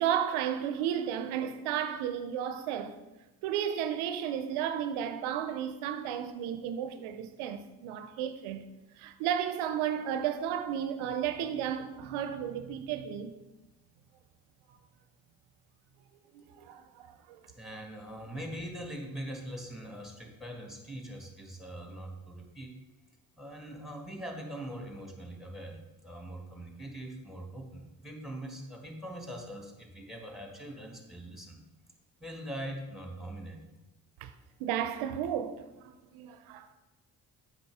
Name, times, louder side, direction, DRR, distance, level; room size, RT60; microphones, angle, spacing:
voice 1, 0.0-3.0 3.4-8.6 9.0-13.4 16.3-17.4 34.2-34.3 34.6-36.7, right 9 dB, 80° right, 0.6 m, -33 dB
voice 2, 17.6-22.8 23.4-31.6 32.2-33.6, right 1 dB, ahead, 1.8 m, -42 dB
7.8 x 6.1 x 3.5 m
hypercardioid pair, 40°, 49 cm